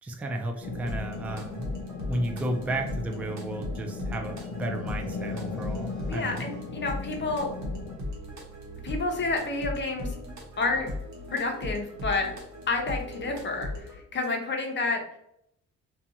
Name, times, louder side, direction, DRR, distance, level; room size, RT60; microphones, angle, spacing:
voice 1, 0.0-1.7 2.1-6.5, right 1 dB, 5° right, 3 dB, 0.3 m, -33 dB
sound 1, 0.6-8.0, left 5 dB, 75° left, 0.5 m, -38 dB
sound 2, 0.6-14.0, left 1 dB, 65° right, 1.0 m, -38 dB
voice 2, 6.1-7.5 8.8-10.1 10.6-10.9 11.3-12.3 12.7-15.0, left 3 dB, 40° left, 2 dB, 0.7 m, -29 dB
2.5 x 2.3 x 2.7 m, 0.74 s
cardioid pair, 90°, 30 cm